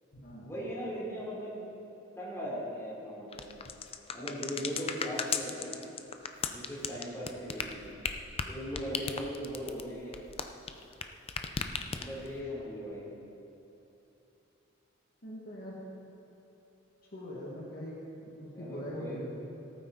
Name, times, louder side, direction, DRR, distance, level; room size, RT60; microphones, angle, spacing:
voice 1, 0.5-1.5 2.2-3.5 4.1-5.9 6.5-7.9 8.5-10.2 12.0-13.1 18.5-19.3, equal, 15° left, -6 dB, 3.1 m, -39 dB
sound 1, 3.3-11.0 11.3-12.3, left 6 dB, 30° left, 0.5 m, -35 dB
voice 2, 15.2-15.8 17.1-19.3, equal, 50° left, -5 dB, 1.8 m, -42 dB
18.0 x 9.0 x 3.9 m, 2.9 s
head